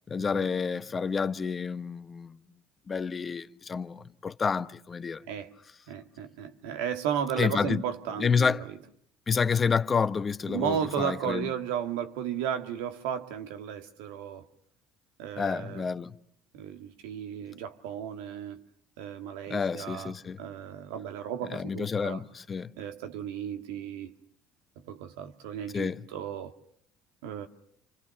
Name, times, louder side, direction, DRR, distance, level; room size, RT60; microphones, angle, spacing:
voice 1, 0.1-2.4 2.9-5.2 7.4-7.8 8.2-8.6 9.3-11.5 15.4-16.1 19.5-20.4 21.5-22.7 25.7-26.0, left 5 dB, 35° left, 1.1 m, -29 dB
voice 2, 5.9-8.6 10.5-14.5 15.2-15.9 16.5-18.6 19.0-20.1 20.4-22.2 22.8-24.1 24.8-26.5 27.2-27.5, right 9 dB, 80° right, 2.0 m, -34 dB
30.0 x 26.0 x 7.1 m
hypercardioid pair, 70°, 0 cm